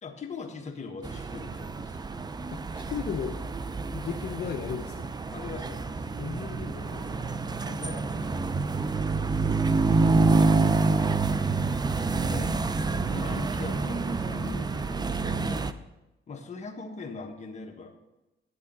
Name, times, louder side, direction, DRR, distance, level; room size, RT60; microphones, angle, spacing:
voice 1, 0.0-2.0 5.3-6.1 7.6-8.5 9.6-11.2 12.3-12.6 12.9-15.6 16.3-17.9, left 4 dB, 35° left, 1 dB, 1.4 m, -41 dB
sound 1, 1.0-15.7, right 4 dB, 20° right, 0.5 m, -27 dB
voice 2, 2.5-3.4 3.9-5.0 6.2-7.3, left 7 dB, 60° left, 2 dB, 0.7 m, -35 dB
9.6 x 8.4 x 4.0 m, 0.98 s
cardioid pair, 90°, 20 cm